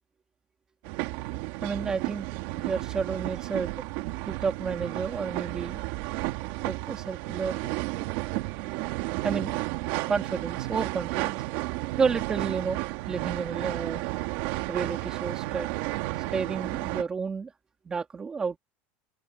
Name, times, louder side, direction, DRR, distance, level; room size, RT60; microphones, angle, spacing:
sound 1, 0.8-17.0, right 20 dB, 60° right, 2.2 m, -32 dB
voice 1, 1.6-2.3 2.5-3.7 4.3-5.8 6.7-7.7 9.2-9.6 10.1-11.3 12.0-14.0 14.7-15.7 16.2-17.5 17.8-18.6, right 5 dB, 15° right, 2.9 m, -31 dB
open air
cardioid pair, 175°, 5 cm